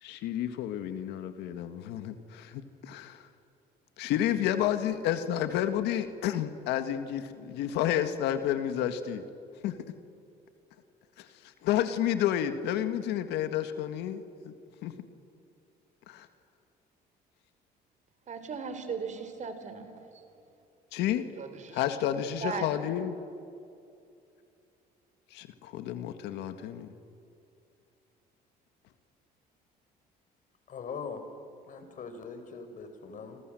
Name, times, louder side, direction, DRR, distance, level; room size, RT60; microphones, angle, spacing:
voice 1, 0.0-3.3 4.0-9.2 9.6-9.9 11.2-11.3 11.6-14.5 14.8-15.0 16.1-16.3 20.9-21.3 21.7-23.1 25.3-26.9, left 11 dB, 85° left, 9 dB, 1.8 m, -30 dB
voice 2, 18.3-20.2 21.4-21.8 22.4-22.9, right 5 dB, 45° right, 9 dB, 3.6 m, -38 dB
voice 3, 30.7-31.2 31.6-33.4, left 5 dB, 50° left, 8 dB, 4.4 m, -41 dB
28.0 x 26.5 x 7.7 m, 2.6 s
cardioid pair, 110°, 17 cm